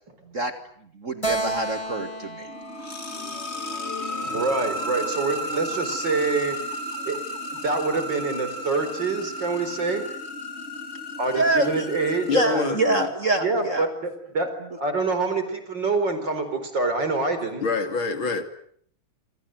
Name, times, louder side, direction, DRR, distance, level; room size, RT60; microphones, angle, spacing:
voice 1, 1.0-2.5 11.3-11.9 12.3-13.9, right 2 dB, 35° right, 7 dB, 2.2 m, -25 dB
Keyboard (musical), 1.2-4.7, right 2 dB, 15° left, 4.1 m, -33 dB
sound 1, 2.4-13.2, equal, 30° left, 3.2 m, -33 dB
voice 2, 4.2-6.6 7.0-7.2 7.5-10.0 11.2-12.8 13.4-14.5 14.8-17.6, right 3 dB, 55° right, 9 dB, 5.2 m, -26 dB
voice 3, 12.3-13.1 17.6-18.5, left 4 dB, 65° left, 7 dB, 3.6 m, -26 dB
27.0 x 27.0 x 8.0 m, 0.65 s
omnidirectional pair, 2.3 m